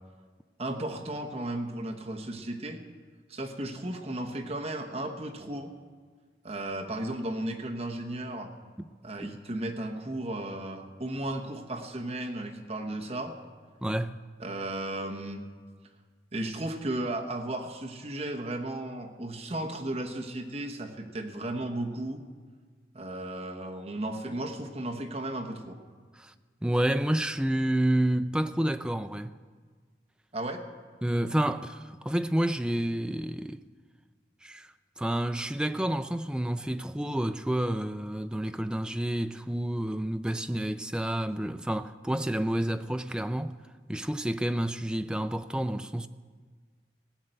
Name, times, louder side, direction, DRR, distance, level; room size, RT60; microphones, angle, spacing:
voice 1, 0.6-2.8 3.3-5.7 6.4-8.5 9.0-13.3 14.4-15.4 16.3-22.2 22.9-25.8 30.3-30.6, right 1 dB, 35° right, 1.1 m, -35 dB
voice 2, 13.8-14.1 26.2-26.3 26.6-29.3 31.0-33.6 34.4-43.5 43.9-46.1, right 1 dB, 5° right, 0.3 m, -29 dB
16.0 x 6.6 x 9.0 m
head